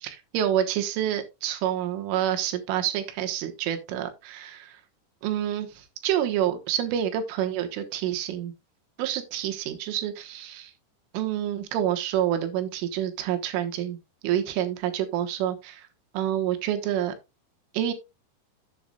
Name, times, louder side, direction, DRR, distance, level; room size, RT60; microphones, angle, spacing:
voice 1, 0.0-4.8 5.2-8.5 9.0-10.7 11.1-14.0 14.2-15.9 16.1-17.2 17.7-17.9, right 11 dB, 90° right, 7 dB, 3.6 m, -28 dB
12.5 x 7.8 x 2.3 m, 0.24 s
omnidirectional pair, 5.6 m